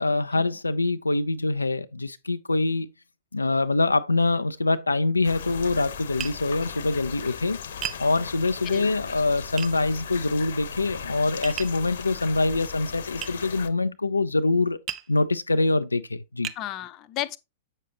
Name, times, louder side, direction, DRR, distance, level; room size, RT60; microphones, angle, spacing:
voice 1, 0.0-2.9 3.3-7.6 8.0-14.8 15.1-16.5, left 3 dB, 85° left, 0.4 m, -24 dB
sound 1, 5.2-13.7, left 7 dB, 65° left, 0.9 m, -38 dB
Tap, 6.2-6.4 7.8-8.0 9.6-9.7 11.4-11.8 13.2-13.4 14.9-15.1 15.8-15.9 16.4-16.6, right 10 dB, 30° right, 0.6 m, -33 dB
voice 2, 8.6-9.1 16.6-17.4, left 13 dB, 35° left, 0.7 m, -34 dB
8.3 x 6.4 x 2.9 m
figure-of-eight pair, 100°, 0 cm